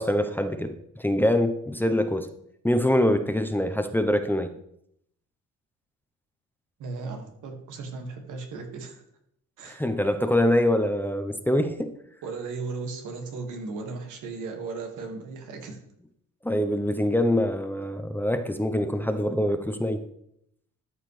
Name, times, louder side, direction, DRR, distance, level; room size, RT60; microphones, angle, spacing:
voice 1, 0.0-2.3 2.6-4.5 9.7-11.9 16.4-20.0, left 1 dB, 5° left, 8 dB, 0.8 m, -24 dB
voice 2, 6.8-9.0 9.6-9.8 12.2-15.8, right 4 dB, 85° right, 3 dB, 1.9 m, -36 dB
13.0 x 5.8 x 3.3 m, 0.74 s
cardioid pair, 90°, 30 cm